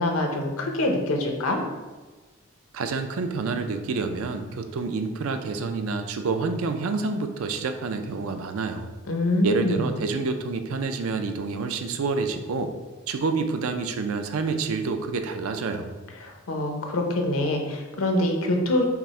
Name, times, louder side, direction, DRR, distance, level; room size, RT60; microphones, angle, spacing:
voice 1, 0.0-1.6 9.1-9.8 16.2-18.8, left 1 dB, 70° left, 3 dB, 0.7 m, -25 dB
voice 2, 2.7-8.9 9.4-12.7 13.1-16.0, right 4 dB, 70° right, 7 dB, 0.4 m, -28 dB
5.8 x 2.1 x 4.2 m, 1.3 s
head